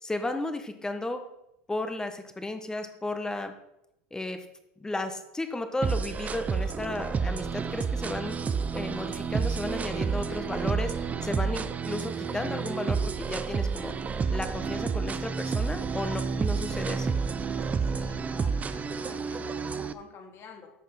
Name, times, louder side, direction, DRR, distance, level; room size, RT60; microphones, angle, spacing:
voice 1, 0.0-1.2 1.7-3.5 4.1-4.4 4.8-8.4 8.7-13.9 14.3-17.1, left 2 dB, 10° left, 7 dB, 1.5 m, -34 dB
sound 1, 5.8-19.9, right 5 dB, 25° right, 0.7 m, -30 dB
voice 2, 17.8-20.7, left 5 dB, 40° left, 3 dB, 2.7 m, -49 dB
14.0 x 5.5 x 5.9 m, 0.84 s
supercardioid pair, 105°, 6 cm